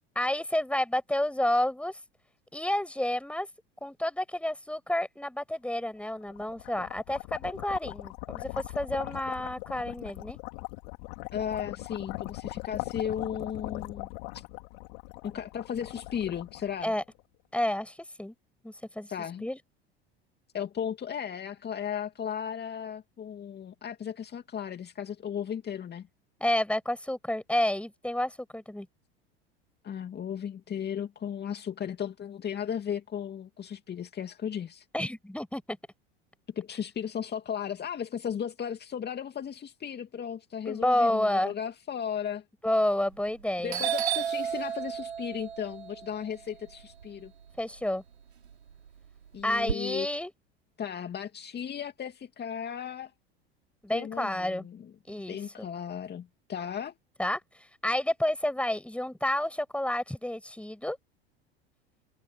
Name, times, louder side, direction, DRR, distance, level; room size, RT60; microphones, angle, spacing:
voice 1, 0.2-1.9 2.5-3.5 3.8-10.4 16.8-17.0 17.5-18.3 18.6-19.1 19.4-19.6 26.4-28.9 34.9-35.8 40.7-41.5 42.6-43.8 47.6-48.0 49.4-50.3 53.8-54.7 55.1-55.7 57.2-57.4 57.8-61.0, left 1 dB, 5° left, 5.7 m, -30 dB
sound 1, 6.1-17.2, left 32 dB, 60° left, 4.0 m, -40 dB
voice 2, 11.3-14.1 14.3-14.4 15.2-16.9 19.1-19.5 20.5-26.1 29.8-34.9 36.5-42.4 43.6-47.3 49.3-50.1 50.8-53.1 53.9-54.9 55.3-56.9, left 8 dB, 30° left, 2.4 m, -35 dB
Doorbell, 43.1-43.4 43.7-47.8 48.2-49.7, right 8 dB, 85° right, 4.4 m, -33 dB
hypercardioid pair, 75°, 32 cm